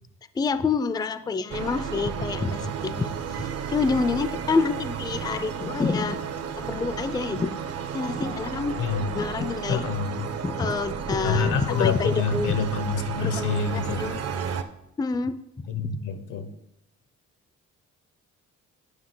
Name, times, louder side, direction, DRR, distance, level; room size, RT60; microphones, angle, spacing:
voice 1, 0.4-6.2 6.6-7.5 7.9-8.8 9.1-9.8 10.4-12.6 13.2-14.2 15.0-16.0, left 4 dB, 15° left, 13 dB, 0.4 m, -27 dB
sound 1, 1.5-14.6, right 7 dB, 55° right, 0.7 m, -33 dB
voice 2, 8.8-9.1 9.7-10.3 11.2-14.2 15.7-16.5, left 5 dB, 85° left, 9 dB, 1.0 m, -27 dB
9.5 x 5.6 x 3.8 m, 0.82 s
cardioid pair, 90°, 30 cm